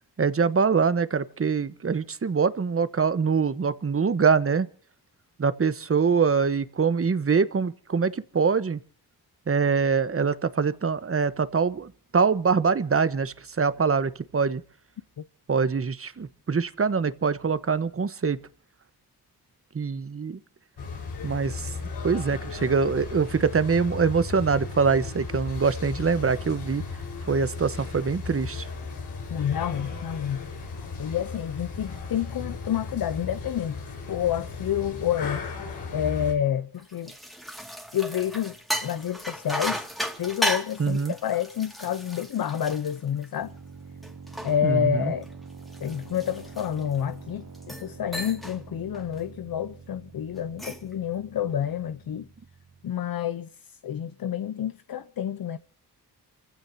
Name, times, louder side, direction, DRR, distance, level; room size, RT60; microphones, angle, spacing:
voice 1, 0.2-4.7 5.4-8.8 9.5-14.6 15.5-18.4 19.7-20.4 21.2-21.7 22.0-26.8 27.3-28.7 40.8-41.1 44.6-45.1, right 5 dB, 35° right, 1.2 m, -24 dB
sound 1, 20.8-36.3, left 4 dB, 85° left, 4.8 m, -36 dB
voice 2, 29.3-30.5 31.0-33.8 34.1-35.5 35.9-37.1 37.9-38.6 38.8-39.9 40.2-43.5 44.4-45.3 45.8-52.3 52.8-55.6, left 9 dB, 60° left, 0.8 m, -29 dB
sound 2, 36.8-43.6 44.0-47.0 47.5-47.9 48.1-48.6 48.9-49.2 50.4-50.9, equal, ahead, 2.2 m, -34 dB
sound 3, 43.4-53.0, right 4 dB, 70° right, 2.5 m, -46 dB
28.0 x 15.5 x 2.8 m
cardioid pair, 80°, 39 cm